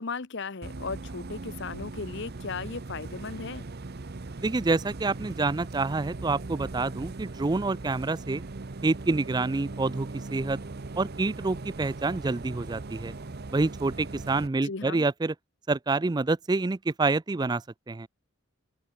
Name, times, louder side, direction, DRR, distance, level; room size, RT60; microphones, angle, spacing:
voice 1, 0.0-3.6 14.6-15.1, left 4 dB, 55° left, 0.9 m, -36 dB
Bus, 0.6-14.5, right 3 dB, 50° right, 0.8 m, -39 dB
voice 2, 4.4-8.4 8.8-10.6 11.0-13.1 13.5-15.3 15.7-18.1, right 3 dB, 20° right, 0.4 m, -27 dB
open air
head